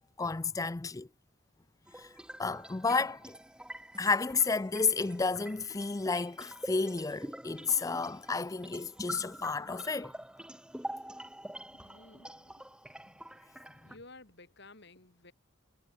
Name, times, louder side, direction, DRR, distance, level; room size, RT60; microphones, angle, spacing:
voice 1, 0.2-1.1 2.0-2.1 2.4-3.4 4.0-10.1, left 4 dB, 15° left, 0.4 m, -31 dB
sound 1, 1.9-14.0, right 1 dB, 5° right, 1.3 m, -46 dB
voice 2, 11.7-12.7 13.9-15.3, left 2 dB, 60° left, 5.4 m, -54 dB
head